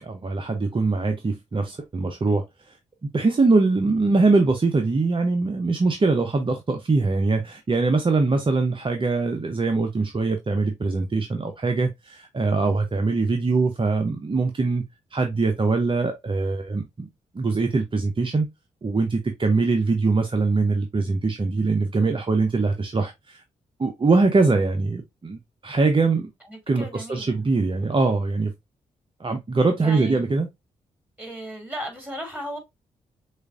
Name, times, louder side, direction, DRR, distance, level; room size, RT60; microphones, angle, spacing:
voice 1, 0.0-2.8 3.1-14.8 15.1-17.1 17.3-18.5 18.8-23.4 23.8-26.3 26.7-28.5 29.2-30.5, right 3 dB, 30° right, 0.7 m, -22 dB
voice 2, 26.5-27.4 29.8-30.2 31.2-32.6, equal, 10° right, 2.5 m, -35 dB
6.3 x 2.5 x 2.4 m
hypercardioid pair, 40°, 17 cm